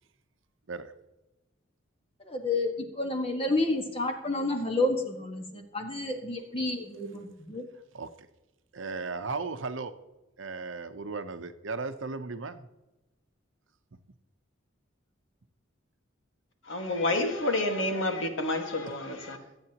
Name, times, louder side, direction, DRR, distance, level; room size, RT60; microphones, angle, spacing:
voice 1, 2.2-7.7, left 2 dB, 25° left, 4 dB, 1.5 m, -30 dB
voice 2, 7.9-8.3 8.7-9.9 10.4-12.7 19.4-19.5, right 4 dB, 70° right, 9 dB, 0.8 m, -36 dB
voice 3, 16.6-19.4, left 2 dB, 70° left, 4 dB, 1.7 m, -29 dB
24.0 x 8.8 x 2.9 m, 1.0 s
head